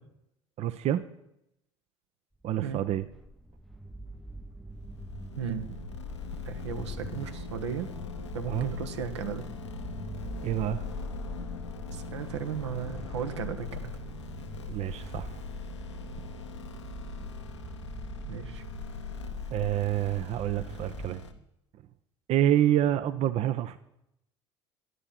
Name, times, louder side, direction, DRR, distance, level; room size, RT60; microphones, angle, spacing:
voice 1, 0.6-1.0 2.4-3.0 8.5-8.7 10.4-10.8 14.7-15.4 19.5-21.2 22.3-23.8, right 12 dB, 45° right, 13 dB, 0.7 m, -27 dB
sound 1, 2.4-21.1, right 2 dB, ahead, 0.6 m, -44 dB
sound 2, 4.8-21.3, left 5 dB, 80° left, 1.1 m, -41 dB
voice 2, 5.4-5.7 6.4-7.9 8.3-9.5 11.9-13.9 18.3-18.6, right 7 dB, 75° right, 8 dB, 1.1 m, -35 dB
12.5 x 11.0 x 5.7 m, 0.80 s
figure-of-eight pair, 60°, 15 cm